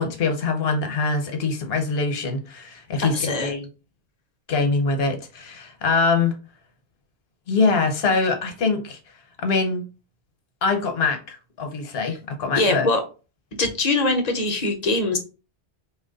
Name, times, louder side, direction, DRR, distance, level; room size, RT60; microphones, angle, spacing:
voice 1, 0.0-3.7 4.5-6.3 7.5-9.0 9.4-9.9 10.6-12.9, left 4 dB, 70° left, 1.0 m, -23 dB
voice 2, 3.0-3.5 12.6-13.0 13.6-15.2, left 2 dB, 45° left, 0.6 m, -22 dB
2.9 x 2.3 x 3.8 m
omnidirectional pair, 1.1 m